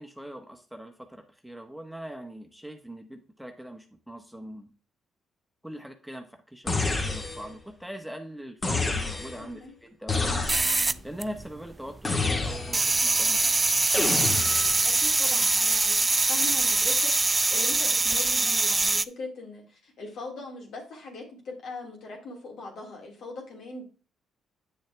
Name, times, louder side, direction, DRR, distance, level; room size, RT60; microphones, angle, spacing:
voice 1, 0.0-4.7 5.6-10.3 11.0-13.5, equal, ahead, 4 dB, 1.3 m, -41 dB
sound 1, 6.7-7.6 8.6-9.5 10.1-10.9 12.0-13.0 13.9-14.8, left 3 dB, 30° left, 2.0 m, -29 dB
voice 2, 9.4-9.7 14.8-23.8, left 3 dB, 70° left, 0 dB, 3.3 m, -41 dB
sound 2, 10.4-11.7 12.0-19.0, right 3 dB, 20° right, 0.3 m, -23 dB
8.9 x 6.4 x 3.5 m, 0.36 s
cardioid pair, 80°, 0 cm